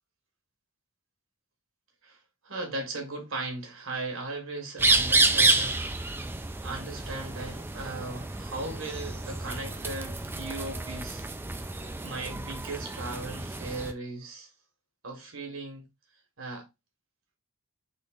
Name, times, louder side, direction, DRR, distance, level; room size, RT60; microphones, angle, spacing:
voice 1, 2.4-6.2 6.6-11.3 11.8-14.5 15.0-15.8 16.4-16.7, right 2 dB, 65° right, 1.7 m, -37 dB
sound 1, 4.8-13.9, right 3 dB, 10° right, 0.3 m, -29 dB
3.8 x 3.6 x 3.8 m
head